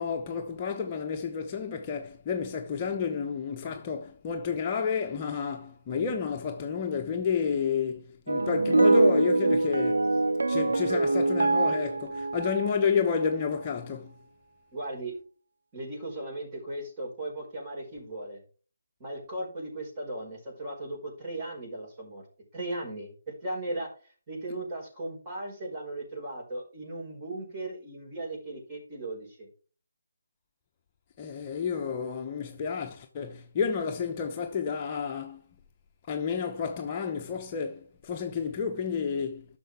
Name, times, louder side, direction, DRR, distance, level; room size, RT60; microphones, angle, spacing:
voice 1, 0.0-10.2 10.5-14.1 31.2-35.4 36.1-39.4, left 6 dB, 25° left, 0.9 m, -30 dB
sound 1, 8.3-13.3, right 2 dB, 70° right, 0.8 m, -24 dB
voice 2, 14.7-15.1 15.7-18.4 19.0-22.2 22.5-29.5, right 1 dB, 25° right, 5.0 m, -37 dB
11.5 x 6.7 x 3.5 m
figure-of-eight pair, 155°, 0 cm